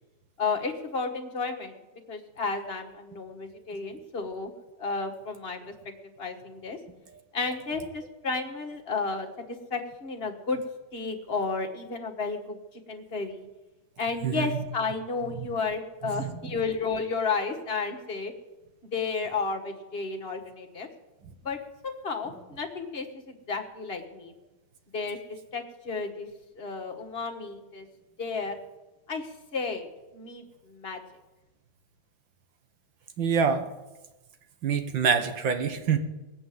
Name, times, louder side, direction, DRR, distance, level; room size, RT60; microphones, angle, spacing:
voice 1, 0.4-1.8 2.1-4.5 4.8-5.6 6.2-6.8 7.3-9.3 9.7-10.6 10.9-12.6 12.9-13.4 14.0-18.3 18.9-20.9 21.4-21.6 21.8-24.3 24.9-25.2 25.5-26.3 26.6-27.8 28.2-28.5 29.1-29.2 29.5-29.9 30.1-31.0, left 4 dB, 35° left, 3 dB, 1.7 m, -32 dB
voice 2, 14.2-14.6 15.4-15.5 16.0-16.4 33.2-33.7 34.6-36.0, right 6 dB, 80° right, 7 dB, 2.0 m, -26 dB
19.5 x 7.7 x 7.9 m, 1.1 s
omnidirectional pair, 2.1 m